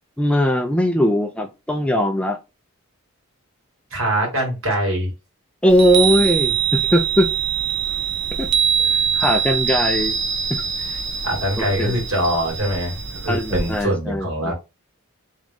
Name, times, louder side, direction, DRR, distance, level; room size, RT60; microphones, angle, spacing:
voice 1, 0.2-2.4 5.6-7.3 8.4-8.5 9.1-10.2 10.5-10.6 11.6-12.0 13.3-14.5, equal, 5° left, 0.4 m, -19 dB
voice 2, 3.9-5.1 10.8-14.5, right 1 dB, 65° right, 2.5 m, -23 dB
Chime, 5.7-13.8, right 7 dB, 50° right, 0.6 m, -23 dB
3.6 x 3.0 x 3.7 m
head